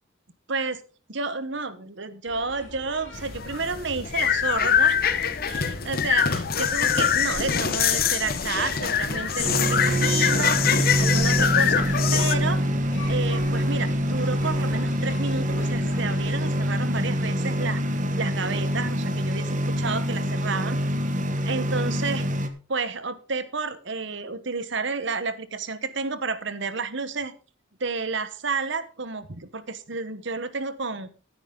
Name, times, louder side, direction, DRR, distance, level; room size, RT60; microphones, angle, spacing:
voice 1, 1.1-5.0 5.4-12.6 13.1-17.8 18.2-20.8 21.4-22.3 22.7-27.3 27.8-31.1, right 4 dB, 60° right, 13 dB, 1.0 m, -31 dB
sound 1, 2.3-16.4, left 1 dB, 65° left, 3.7 m, -41 dB
sound 2, 3.1-12.3, left 8 dB, 45° left, 0.8 m, -24 dB
sound 3, 9.4-22.5, equal, 40° right, 1.2 m, -25 dB
12.5 x 9.9 x 3.8 m, 0.34 s
head